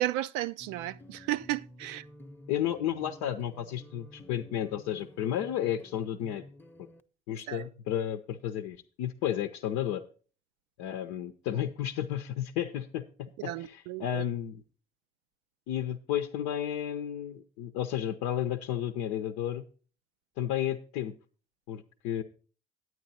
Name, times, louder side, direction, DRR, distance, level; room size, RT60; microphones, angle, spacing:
voice 1, 0.0-2.1 7.5-7.7 13.4-14.2, right 14 dB, 75° right, 0.4 m, -33 dB
sound 1, 0.6-7.0, left 1 dB, 5° left, 0.8 m, -51 dB
voice 2, 2.5-6.4 7.3-10.0 10.8-13.0 13.4-14.6 15.7-19.6 20.4-21.1 21.7-22.2, left 11 dB, 75° left, 0.7 m, -32 dB
9.4 x 9.4 x 4.1 m
hypercardioid pair, 50°, 29 cm